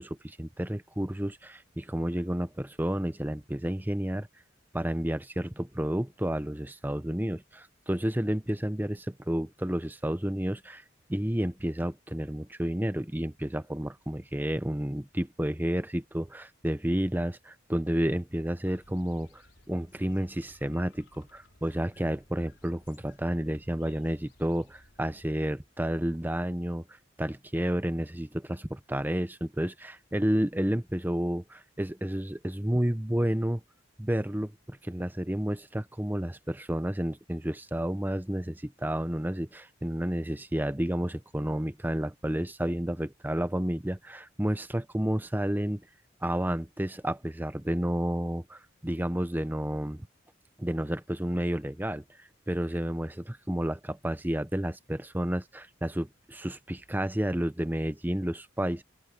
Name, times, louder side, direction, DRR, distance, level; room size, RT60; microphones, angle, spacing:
voice 1, 0.0-4.3 4.7-10.8 11.1-19.4 19.7-26.8 27.2-33.6 34.0-45.8 46.2-50.1 50.6-58.8, right 1 dB, 10° right, 0.8 m, -31 dB
sound 1, 18.6-25.5, left 2 dB, 70° left, 4.0 m, -59 dB
open air
head